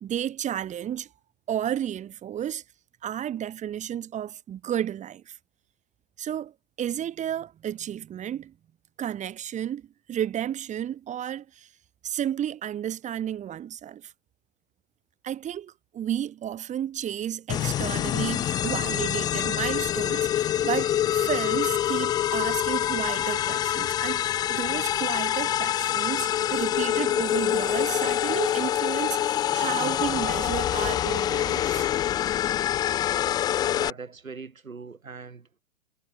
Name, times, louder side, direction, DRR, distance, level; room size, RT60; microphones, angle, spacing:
voice 1, 0.0-1.1 1.5-2.6 3.0-5.3 6.2-6.5 6.8-8.5 9.0-11.7 12.0-14.1 15.2-31.9, right 10 dB, 15° right, 1.6 m, -32 dB
sound 1, 17.5-33.9, left 11 dB, 10° left, 0.5 m, -26 dB
voice 2, 33.7-35.6, right 4 dB, 90° right, 1.5 m, -41 dB
figure-of-eight pair, 110°, 40 cm